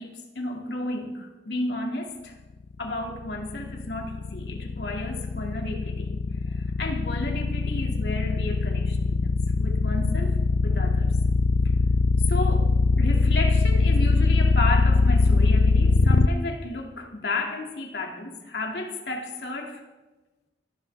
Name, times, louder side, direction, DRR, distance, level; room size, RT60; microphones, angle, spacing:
voice 1, 0.0-2.4 2.8-11.2 12.3-19.8, left 2 dB, 70° left, 2 dB, 2.3 m, -33 dB
sound 1, 3.0-16.3, left 4 dB, 85° left, 0.6 m, -21 dB
25.0 x 10.5 x 3.5 m, 1.2 s
head